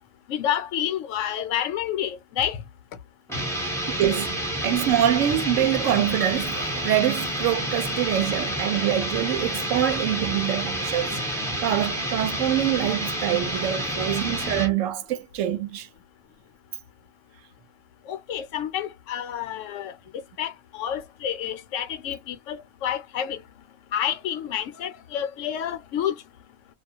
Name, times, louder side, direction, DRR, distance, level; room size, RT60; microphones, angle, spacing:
voice 1, 0.3-2.6 18.1-19.9 20.4-23.4 23.9-26.1, left 10 dB, 75° left, 0.9 m, -29 dB
sound 1, 3.3-14.8, equal, 5° left, 0.7 m, -29 dB
voice 2, 3.9-4.4 4.6-15.9, right 11 dB, 75° right, 0.9 m, -25 dB
2.4 x 2.2 x 2.6 m
omnidirectional pair, 1.3 m